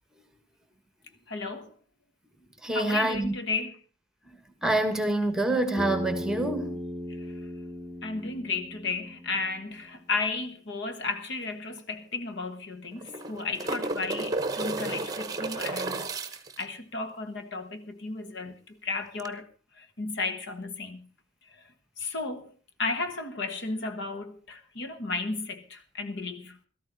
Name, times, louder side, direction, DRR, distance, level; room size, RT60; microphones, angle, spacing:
voice 1, 1.3-1.7 2.7-3.8 7.1-7.3 8.0-16.1 16.6-19.5 19.8-21.1 21.5-21.6 22.0-22.5 22.8-26.6, left 3 dB, 60° left, 1.3 m, -34 dB
voice 2, 2.6-3.3 4.6-6.8, right 1 dB, 5° right, 1.3 m, -26 dB
Bass guitar, 5.8-10.1, left 1 dB, 15° left, 2.6 m, -37 dB
sound 1, 11.4-11.5 11.8-11.9 12.9-16.6 19.2-19.3, right 2 dB, 20° right, 1.0 m, -32 dB
17.0 x 13.0 x 4.0 m
head